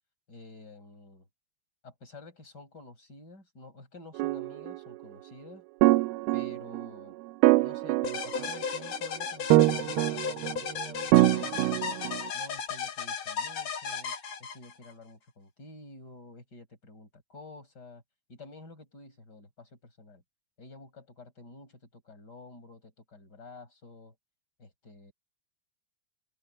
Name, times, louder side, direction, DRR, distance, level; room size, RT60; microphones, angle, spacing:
voice 1, 0.3-1.3 1.8-5.6 6.3-7.2 7.6-12.0 12.3-14.1 14.4-18.0 18.3-20.2 20.6-24.2 24.6-25.1, left 2 dB, 25° left, 6.2 m, -50 dB
sound 1, 4.2-4.8 5.8-6.9 7.4-8.8 9.5-10.6 11.1-12.2, right 19 dB, 85° right, 2.6 m, -24 dB
sound 2, 8.0-14.9, left 6 dB, 50° left, 2.7 m, -35 dB
omnidirectional pair, 4.5 m